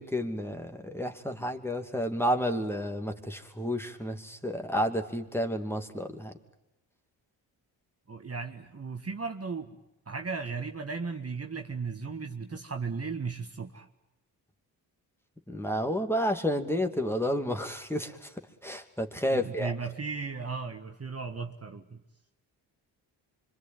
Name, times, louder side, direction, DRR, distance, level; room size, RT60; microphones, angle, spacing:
voice 1, 0.0-6.3 15.5-18.3 18.6-19.7, equal, 5° left, 4 dB, 2.7 m, -31 dB
voice 2, 8.1-9.8 10.1-13.9 19.3-22.0, right 5 dB, 30° right, 4 dB, 1.8 m, -36 dB
25.5 x 23.5 x 9.1 m, 0.91 s
supercardioid pair, 50°, 48 cm